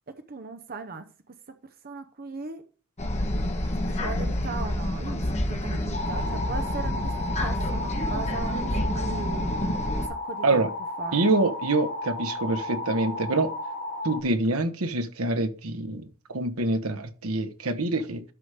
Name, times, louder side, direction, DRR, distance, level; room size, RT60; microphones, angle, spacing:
voice 1, 0.3-1.6 1.8-2.6 3.8-9.6 10.1-10.7 11.0-11.3, right 4 dB, 45° right, 0.8 m, -38 dB
sound 1, 3.0-10.1, left 1 dB, 30° left, 1.4 m, -28 dB
sound 2, 5.9-14.2, left 1 dB, 55° left, 2.1 m, -34 dB
voice 2, 11.1-13.5 14.0-18.2, right 2 dB, 80° right, 1.2 m, -26 dB
12.0 x 4.9 x 5.0 m
head